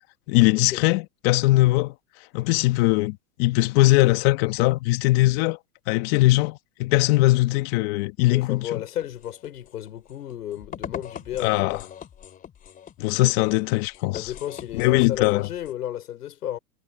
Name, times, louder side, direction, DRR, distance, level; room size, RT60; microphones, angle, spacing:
voice 1, 0.3-1.9 2.3-5.6 5.9-8.8 11.4-11.8 13.0-14.3 14.7-15.5, left 20 dB, 40° left, 1.7 m, -21 dB
voice 2, 8.3-11.8 14.1-16.6, left 11 dB, 85° left, 6.1 m, -33 dB
sound 1, 9.0-15.7, left 8 dB, 20° left, 2.9 m, -42 dB
hypercardioid pair, 145°, 46 cm